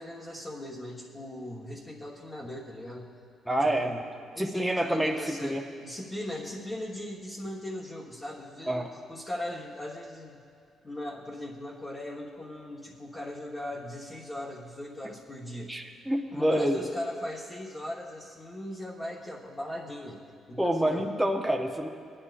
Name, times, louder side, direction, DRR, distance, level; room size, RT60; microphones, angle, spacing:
voice 1, 0.0-3.1 3.6-4.0 4.3-10.4 10.8-15.7 16.3-20.2 20.5-21.1, left 1 dB, 25° left, -5 dB, 1.2 m, -39 dB
voice 2, 3.5-3.9 4.4-5.6 8.7-8.9 15.7-16.8 20.6-21.9, right 1 dB, 5° right, 1 dB, 0.7 m, -27 dB
18.0 x 10.0 x 2.5 m, 2.4 s
cardioid pair, 90°, 0 cm